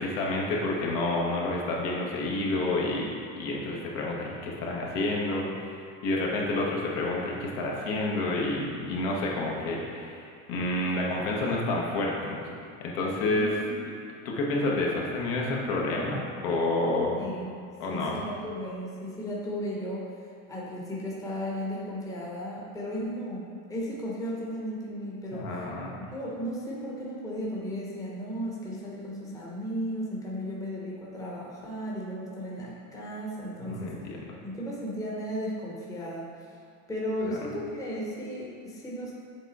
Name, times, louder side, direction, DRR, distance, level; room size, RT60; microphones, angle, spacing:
voice 1, 0.0-12.5 12.8-13.6 14.2-17.2 17.8-18.1 25.3-26.0 33.6-34.2, left 2 dB, 65° left, -2 dB, 1.3 m, -29 dB
voice 2, 13.4-13.7 17.2-17.5 17.9-20.1 20.5-25.7 26.1-33.9 34.4-36.3 36.9-39.1, equal, 10° left, -5 dB, 0.9 m, -35 dB
7.2 x 3.6 x 4.1 m, 2.4 s
supercardioid pair, 135°, 40 cm